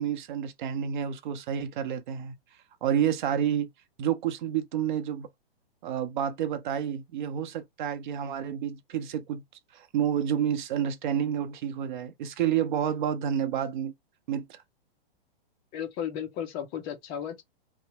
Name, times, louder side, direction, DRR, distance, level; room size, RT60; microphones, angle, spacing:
voice 1, 0.0-2.3 2.8-3.7 4.0-5.3 5.8-9.4 9.7-13.9 14.3-14.6, right 9 dB, 50° right, 0.7 m, -29 dB
voice 2, 15.7-17.4, left 9 dB, 15° left, 0.3 m, -34 dB
2.8 x 2.1 x 2.7 m
hypercardioid pair, 135°, 30 cm